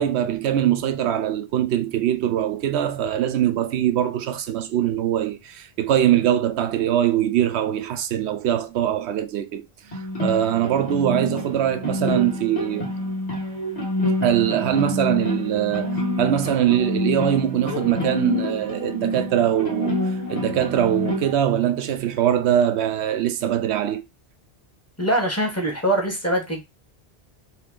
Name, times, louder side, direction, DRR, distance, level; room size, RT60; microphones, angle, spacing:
voice 1, 0.0-9.6 10.2-12.9 14.2-20.0 20.3-24.0, right 11 dB, 85° right, 0.8 m, -22 dB
sound 1, 9.9-21.3, left 1 dB, 40° left, 1.3 m, -27 dB
voice 2, 25.0-26.6, right 1 dB, 15° left, 0.9 m, -23 dB
2.8 x 2.8 x 3.6 m
omnidirectional pair, 1.1 m